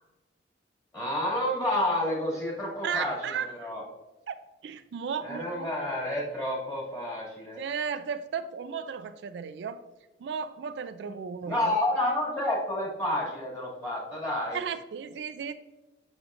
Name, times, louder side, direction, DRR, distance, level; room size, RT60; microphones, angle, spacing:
voice 1, 0.9-3.8 5.2-7.6 11.4-14.6, left 1 dB, 20° left, -6 dB, 2.2 m, -30 dB
voice 2, 2.8-3.7 4.3-5.7 7.6-9.8 10.2-11.8 14.5-15.5, right 6 dB, 70° right, 11 dB, 0.3 m, -35 dB
7.2 x 6.0 x 2.5 m, 1.1 s
head